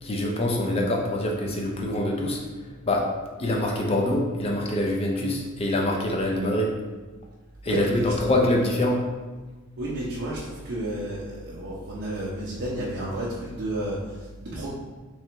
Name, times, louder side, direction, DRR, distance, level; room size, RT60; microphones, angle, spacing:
voice 1, 0.0-2.4 2.8-3.1 3.4-6.7 7.6-9.0, left 1 dB, 25° left, 0 dB, 0.5 m, -25 dB
voice 2, 7.7-8.1 9.8-14.7, right 1 dB, 50° right, -7 dB, 0.5 m, -31 dB
3.6 x 3.2 x 3.0 m, 1.3 s
head